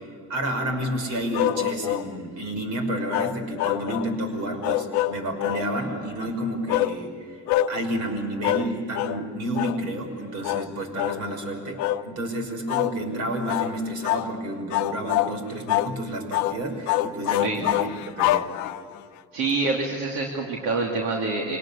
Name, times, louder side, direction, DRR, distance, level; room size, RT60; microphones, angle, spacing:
voice 1, 0.0-7.4 7.7-17.9 18.2-18.5, right 1 dB, 60° right, 5 dB, 5.7 m, -30 dB
sound 1, 1.3-2.1 3.1-4.1 4.6-5.7 6.7-7.0 7.5-7.7 8.4-8.7 8.9-9.2 9.5-9.8 10.4-10.7 11.0-11.2 11.8-12.0 12.7-12.9 13.5-13.7 14.0-14.3 14.7-15.3 15.7-15.9 16.3-16.6 16.9-19.0, left 15 dB, 70° left, 0.8 m, -25 dB
voice 2, 19.3-21.6, right 3 dB, 75° right, -1 dB, 3.0 m, -26 dB
26.0 x 19.0 x 8.5 m, 2.3 s
cardioid pair, 115°, 30 cm